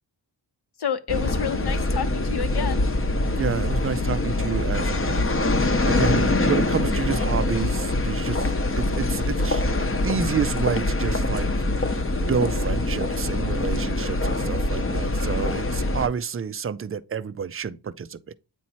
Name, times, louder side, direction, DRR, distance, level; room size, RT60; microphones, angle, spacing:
voice 1, 0.8-2.9, left 7 dB, 60° left, 0.8 m, -29 dB
sound 1, 1.1-16.1, left 2 dB, 30° left, 0.8 m, -24 dB
voice 2, 3.3-5.3 5.8-8.4 8.8-11.5 11.8-18.3, right 6 dB, 30° right, 0.4 m, -29 dB
8.5 x 3.0 x 4.2 m
wide cardioid pair, 85°, 46 cm